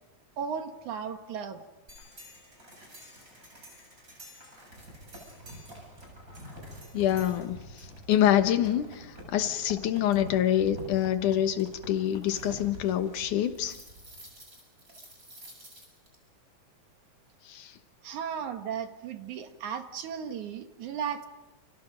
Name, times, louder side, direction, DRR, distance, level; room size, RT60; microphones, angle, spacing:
voice 1, 0.4-1.6 18.0-21.3, right 7 dB, 75° right, 6 dB, 3.1 m, -35 dB
sound 1, 1.9-16.2, equal, 25° right, 8.0 m, -47 dB
voice 2, 6.9-13.8 17.4-17.8, left 11 dB, 90° left, 9 dB, 2.8 m, -26 dB
30.0 x 29.5 x 5.2 m, 1.0 s
omnidirectional pair, 3.4 m